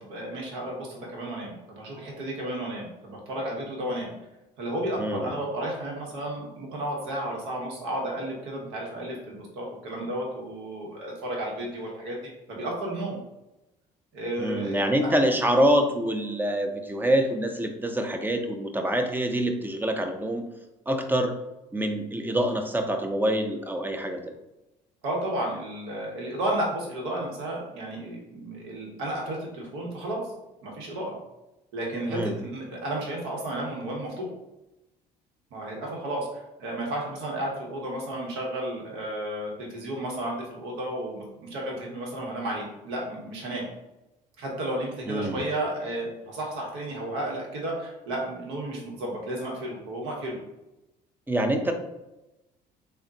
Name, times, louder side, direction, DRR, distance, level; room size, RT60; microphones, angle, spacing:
voice 1, 0.0-4.1 4.6-13.2 14.1-15.1 25.0-30.2 30.6-31.2 31.7-34.3 35.5-43.7 44.4-50.4, right 1 dB, 65° right, -1 dB, 1.1 m, -33 dB
voice 2, 5.0-5.3 14.4-20.4 20.9-21.3 21.7-24.2 32.1-32.3 45.1-45.4 51.3-51.7, right 1 dB, 10° right, 5 dB, 0.5 m, -25 dB
3.6 x 2.2 x 2.7 m, 0.96 s
hypercardioid pair, 55°, 21 cm